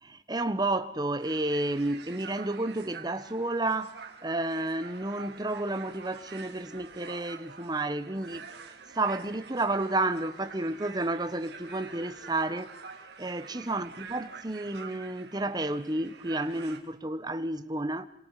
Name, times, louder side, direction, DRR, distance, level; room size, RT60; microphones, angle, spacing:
voice 1, 0.0-8.5 8.9-12.7 13.2-18.1, right 2 dB, 20° right, 1.3 m, -31 dB
sound 1, 1.2-16.8, right 5 dB, 60° right, 3.0 m, -47 dB
27.5 x 26.5 x 5.1 m
head